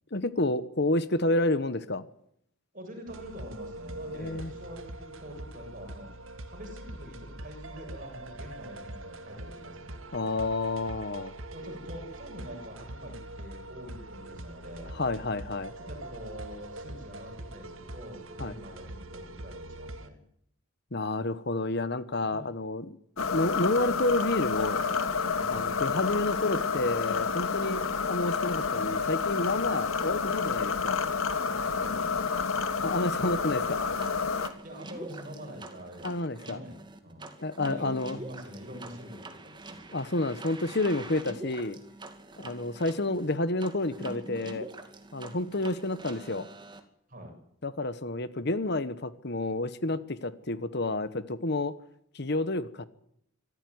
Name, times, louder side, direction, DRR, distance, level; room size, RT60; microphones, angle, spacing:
voice 1, 0.1-2.0 4.2-4.5 10.1-11.3 14.9-15.7 18.4-18.5 20.9-24.8 25.5-31.0 32.8-33.8 36.0-36.6 37.4-38.2 39.9-41.8 42.4-44.7 45.1-46.5 47.6-51.7 52.1-52.9, left 2 dB, 50° left, 14 dB, 1.2 m, -30 dB
voice 2, 2.7-6.1 6.5-10.0 11.5-15.0 15.8-20.2 22.2-22.5 25.4-25.7 27.7-28.0 31.6-32.2 34.6-37.3 37.7-40.0 42.3-42.4 47.1-47.3, equal, 40° right, 3 dB, 7.4 m, -45 dB
sound 1, 3.1-20.1, right 1 dB, 70° right, 2.0 m, -43 dB
sound 2, 23.2-34.5, left 5 dB, 80° left, 1.9 m, -29 dB
sound 3, 34.0-46.8, right 2 dB, 20° right, 2.3 m, -45 dB
25.5 x 14.5 x 9.5 m, 0.73 s
head